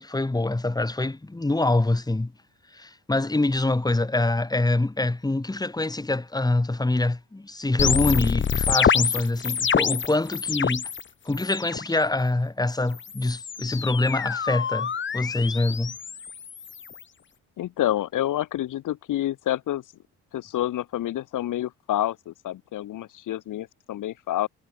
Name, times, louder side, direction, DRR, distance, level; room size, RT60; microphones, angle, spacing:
voice 1, 0.0-2.3 2.7-10.9 11.3-15.9, left 2 dB, 10° left, 2.1 m, -25 dB
sound 1, 7.8-11.0 11.3-11.9 12.9-17.0, left 7 dB, 35° left, 1.2 m, -26 dB
voice 2, 17.6-19.8 20.3-24.5, left 13 dB, 70° left, 1.8 m, -28 dB
supercardioid pair, 75°, 32 cm